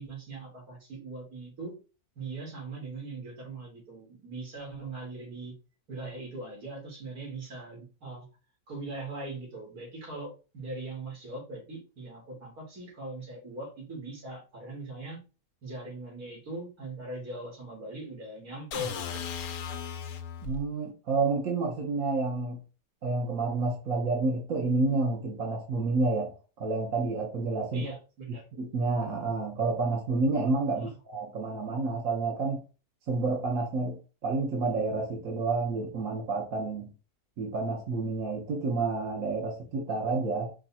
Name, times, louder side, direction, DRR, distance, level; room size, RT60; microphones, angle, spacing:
voice 1, 0.0-1.8 2.2-5.5 5.9-8.3 8.7-15.2 15.6-19.2 27.7-28.4 30.7-31.0, right 2 dB, 85° right, 2.7 m, -40 dB
sound 1, 18.7-20.6, left 7 dB, 80° left, 1.2 m, -36 dB
voice 2, 20.4-22.6 23.0-27.8 28.6-32.6 33.1-36.9 37.4-40.5, right 3 dB, 65° right, 1.4 m, -29 dB
5.3 x 2.3 x 4.1 m
omnidirectional pair, 1.6 m